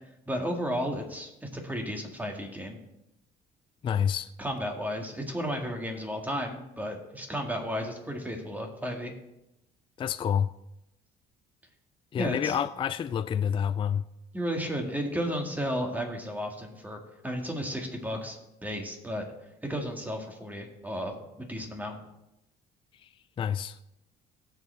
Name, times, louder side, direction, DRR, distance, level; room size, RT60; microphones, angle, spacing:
voice 1, 0.3-2.8 4.4-9.1 12.2-12.6 14.3-19.2 19.6-22.0, equal, 10° right, 2.0 m, -33 dB
voice 2, 3.8-4.3 10.0-10.5 12.1-14.0 23.4-23.8, left 8 dB, 30° left, 0.4 m, -28 dB
17.5 x 6.9 x 3.5 m
cardioid pair, 110°, 17 cm